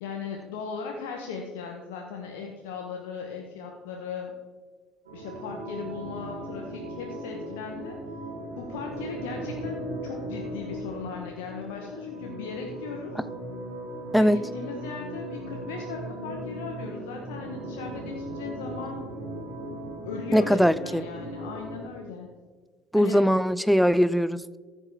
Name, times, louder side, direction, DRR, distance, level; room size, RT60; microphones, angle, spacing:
voice 1, 0.0-4.3 5.1-8.0 8.6-13.1 14.2-19.0 20.0-22.3 22.9-23.3, left 5 dB, 70° left, 1 dB, 0.9 m, -37 dB
sound 1, 5.0-21.8, right 1 dB, 80° right, 2.1 m, -38 dB
voice 2, 20.3-21.0 22.9-24.6, equal, ahead, 17 dB, 0.4 m, -21 dB
14.0 x 6.4 x 3.3 m, 1.4 s
figure-of-eight pair, 60°, 0 cm